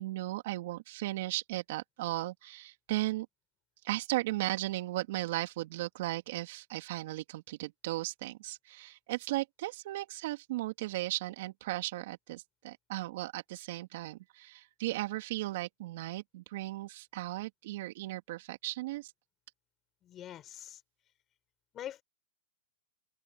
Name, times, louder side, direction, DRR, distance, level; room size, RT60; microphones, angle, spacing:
voice 1, 0.0-3.3 3.8-19.1, right 17 dB, 60° right, 3.0 m, -36 dB
voice 2, 20.0-20.8 21.7-22.0, left 11 dB, 25° left, 5.0 m, -44 dB
open air
hypercardioid pair, 130°, 0 cm